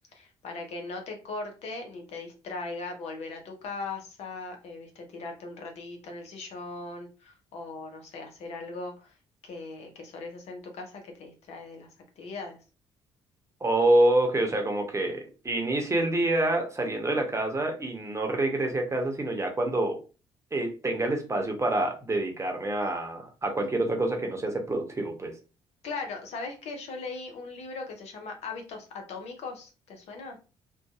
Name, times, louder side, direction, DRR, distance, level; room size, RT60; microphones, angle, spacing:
voice 1, 0.1-9.1 9.4-11.9 12.2-12.6 25.8-30.4, left 3 dB, 65° left, 4 dB, 0.7 m, -39 dB
voice 2, 13.6-20.0 20.5-25.3, right 1 dB, 25° right, 3 dB, 0.8 m, -27 dB
2.6 x 2.2 x 2.4 m, 0.33 s
hypercardioid pair, 50°, 12 cm